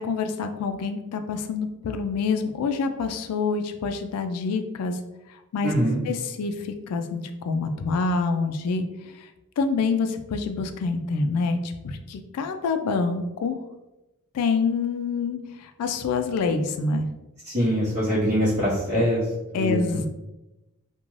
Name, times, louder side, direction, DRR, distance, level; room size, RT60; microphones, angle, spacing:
voice 1, 0.0-5.0 5.5-5.7 6.1-8.9 9.6-13.6 14.3-17.1 19.5-20.1, left 4 dB, 85° left, 6 dB, 0.3 m, -26 dB
voice 2, 5.6-6.0 17.5-19.2 19.5-20.0, equal, 35° right, -10 dB, 0.8 m, -23 dB
2.5 x 2.2 x 3.0 m, 0.99 s
head